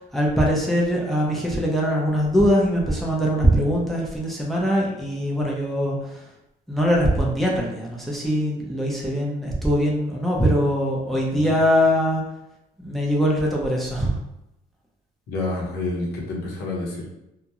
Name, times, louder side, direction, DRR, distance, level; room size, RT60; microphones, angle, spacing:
voice 1, 0.1-6.0 6.7-12.2 12.8-14.1, equal, ahead, -3 dB, 0.6 m, -22 dB
voice 2, 15.3-17.0, left 2 dB, 70° left, -2 dB, 0.9 m, -28 dB
2.4 x 2.1 x 2.9 m, 0.89 s
cardioid pair, 110°, 17 cm